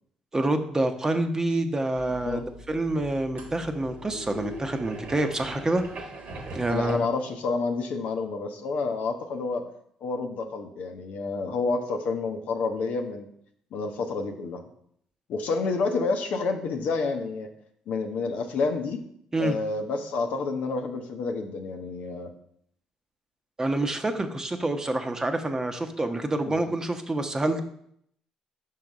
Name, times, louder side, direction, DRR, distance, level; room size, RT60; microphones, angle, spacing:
voice 1, 0.3-2.4 2.7-5.8 6.5-7.0 19.3-19.6 23.6-27.6, right 2 dB, 20° right, 7 dB, 0.9 m, -27 dB
sound 1, 2.0-6.9, right 1 dB, 55° right, 1.2 m, -41 dB
voice 2, 6.7-9.7 10.0-13.3 13.7-14.6 15.3-17.5 17.9-19.0 19.4-22.3 26.5-26.6, left 4 dB, 65° left, 5 dB, 0.8 m, -29 dB
5.7 x 4.7 x 5.2 m, 0.69 s
hypercardioid pair, 50°, 3 cm